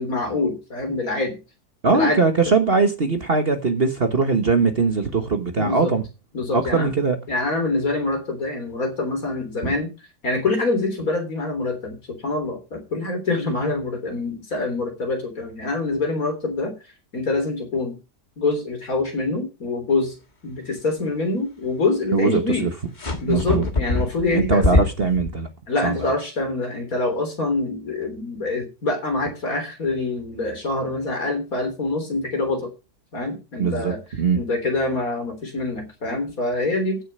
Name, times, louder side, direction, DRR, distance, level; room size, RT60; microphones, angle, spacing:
voice 1, 0.0-1.4 1.9-2.5 5.6-5.9 6.3-6.9 7.3-9.9 10.2-16.8 17.1-18.0 18.4-20.1 20.4-22.7 23.2-24.8 25.7-32.7 33.1-34.0 34.3-37.0, left 3 dB, 55° left, 3.9 m, -25 dB
voice 2, 1.8-6.0 6.5-7.2 9.6-9.7 22.1-22.7 23.3-23.7 24.3-25.5 25.8-26.1 33.6-34.4, right 4 dB, 35° right, 1.4 m, -21 dB
sound 1, 23.0-25.3, left 2 dB, 30° left, 1.7 m, -23 dB
15.0 x 6.7 x 5.4 m
omnidirectional pair, 1.8 m